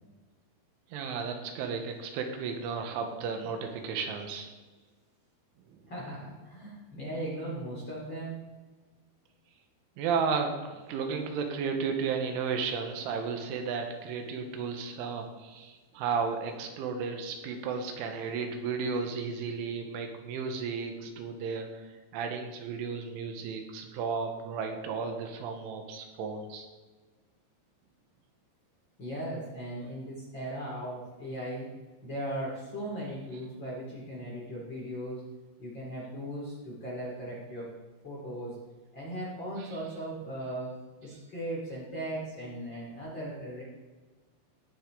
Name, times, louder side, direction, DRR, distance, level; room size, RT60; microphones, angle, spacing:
voice 1, 0.9-4.5 10.0-26.7 39.6-39.8 41.1-41.2, right 5 dB, 90° right, 5 dB, 3.5 m, -34 dB
voice 2, 5.9-8.5 29.0-31.7 32.0-35.2 35.6-37.7 38.0-38.6 38.9-40.7 41.0-43.6, right 1 dB, 30° left, -6 dB, 2.4 m, -38 dB
17.5 x 6.0 x 3.8 m, 1.3 s
omnidirectional pair, 5.6 m